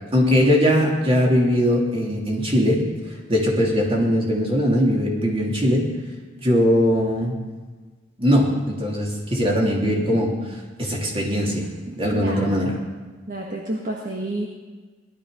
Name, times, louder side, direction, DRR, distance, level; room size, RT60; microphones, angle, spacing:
voice 1, 0.1-2.8 3.3-5.9 6.4-7.3 8.2-10.4 10.8-12.7, equal, 30° right, -2 dB, 3.4 m, -20 dB
voice 2, 12.1-12.8 13.3-14.5, right 1 dB, 45° right, -1 dB, 1.7 m, -30 dB
18.5 x 12.5 x 5.2 m, 1.4 s
head